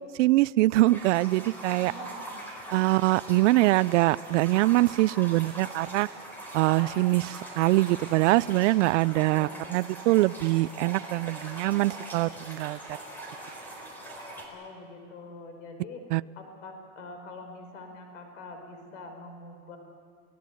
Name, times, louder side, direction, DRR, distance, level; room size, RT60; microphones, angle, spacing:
voice 1, 0.0-1.9 2.7-6.1 6.5-12.8 16.1-16.2, right 19 dB, 70° right, 21 dB, 0.6 m, -23 dB
sound 1, 0.8-14.4, right 1 dB, 5° left, 4.3 m, -42 dB
voice 2, 1.7-2.3 9.3-9.8 14.5-19.8, left 3 dB, 85° left, 5 dB, 5.5 m, -45 dB
29.0 x 18.0 x 8.4 m, 2.1 s
supercardioid pair, 160°, 37 cm